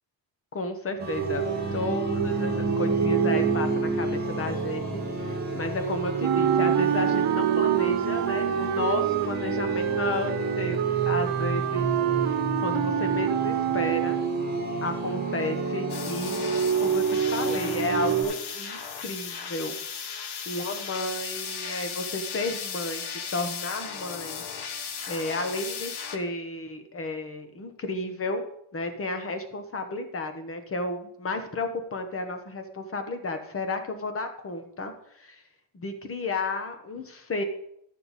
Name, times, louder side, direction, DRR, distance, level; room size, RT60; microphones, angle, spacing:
voice 1, 0.5-1.5 1.7-11.9 12.2-14.2 14.8-19.8 20.5-23.0 23.3-24.4 25.1-28.4 28.7-34.9 35.2-35.4 35.7-37.4, left 2 dB, 25° left, 7 dB, 1.0 m, -32 dB
sound 1, 1.0-18.2, right 5 dB, 20° right, 1.6 m, -28 dB
Wind instrument woodwind instrument, 6.2-14.5, right 12 dB, 85° right, 0.7 m, -28 dB
sound 2, 15.9-26.2, left 6 dB, 50° left, 0.9 m, -36 dB
12.0 x 6.6 x 4.1 m, 0.74 s
wide cardioid pair, 175°, 49 cm